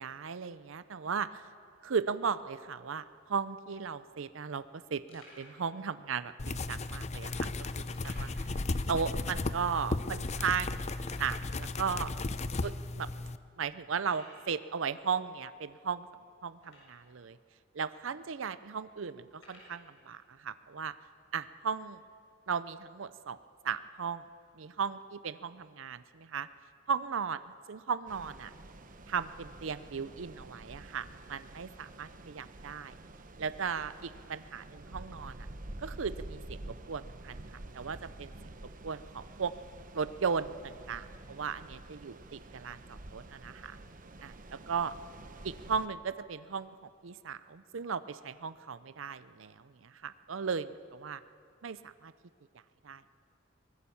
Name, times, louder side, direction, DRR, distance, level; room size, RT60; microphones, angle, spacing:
voice 1, 0.0-1.5 1.8-7.5 7.8-8.5 8.9-10.8 11.1-12.1 12.6-13.1 13.6-16.1 16.4-17.4 17.7-20.9 21.3-22.0 22.5-23.4 23.6-24.2 24.6-26.5 26.9-27.4 27.7-28.5 29.1-33.0 33.4-35.4 35.8-37.4 37.7-38.3 38.8-39.5 39.9-43.8 44.2-44.9 45.4-51.2 51.6-52.1 52.8-53.0, right 6 dB, 65° right, 14 dB, 0.6 m, -36 dB
sound 1, 5.1-5.6 6.4-6.5 7.9-8.5 8.8-8.9 9.3-9.4 10.0-10.1 11.0-11.5 12.3-12.4 13.0-13.1 14.0-14.5 16.6-17.1 17.9-18.0 19.3-19.8, left 1 dB, 70° left, 7.4 m, -55 dB
sound 2, 6.4-13.4, left 3 dB, 35° left, 0.6 m, -35 dB
sound 3, 28.1-45.9, right 2 dB, 40° right, 1.0 m, -49 dB
23.5 x 20.0 x 7.1 m, 2.3 s
head